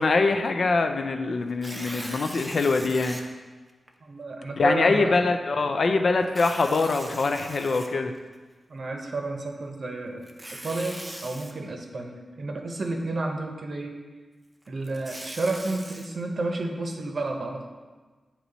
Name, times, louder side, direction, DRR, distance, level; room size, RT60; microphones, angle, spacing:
voice 1, 0.0-3.2 4.6-8.1, left 3 dB, 60° left, 6 dB, 0.4 m, -23 dB
Tearing, 1.5-3.2 3.9-4.0 6.2-8.3 10.2-11.5 14.7-16.1, right 1 dB, 15° right, 0.5 m, -40 dB
voice 2, 4.0-5.1 8.7-10.2 10.5-14.0 14.7-17.7, right 2 dB, 55° right, 2 dB, 0.7 m, -31 dB
8.4 x 3.0 x 4.0 m, 1.4 s
wide cardioid pair, 115°, 0 cm